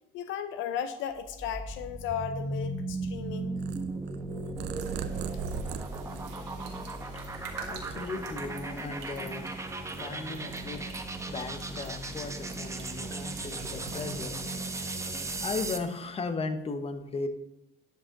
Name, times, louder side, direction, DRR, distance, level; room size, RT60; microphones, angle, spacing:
voice 1, 0.1-3.6, left 8 dB, 70° left, 10 dB, 0.6 m, -35 dB
sound 1, 1.2-15.9, right 2 dB, 15° right, 0.8 m, -37 dB
Purr, 3.6-7.1 7.5-8.6, right 7 dB, 55° right, 0.6 m, -39 dB
sound 2, 4.8-14.3, right 6 dB, 90° right, 1.8 m, -48 dB
voice 2, 7.1-10.9 11.3-14.4 15.3-17.3, left 3 dB, 30° left, 8 dB, 1.0 m, -37 dB
11.5 x 5.2 x 3.8 m, 0.87 s
cardioid pair, 100°, 21 cm